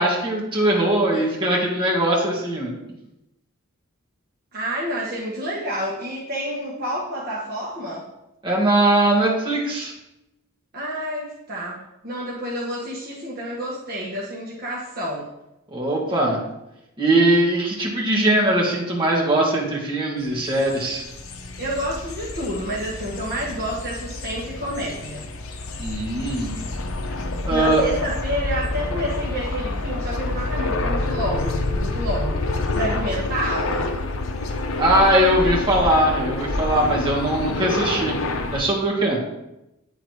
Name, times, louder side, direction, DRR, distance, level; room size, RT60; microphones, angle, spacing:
voice 1, 0.0-2.7 8.4-9.9 15.7-16.4 17.0-21.0 25.8-26.5 27.4-27.8 34.8-38.1 38.5-39.2, right 1 dB, 20° right, -3 dB, 1.8 m, -20 dB
voice 2, 4.5-8.1 10.7-15.3 21.6-25.3 27.5-33.9, equal, 45° right, -5 dB, 1.2 m, -29 dB
sound 1, 20.3-38.6, left 2 dB, 70° left, 0.7 m, -28 dB
9.2 x 3.9 x 4.6 m, 0.90 s
head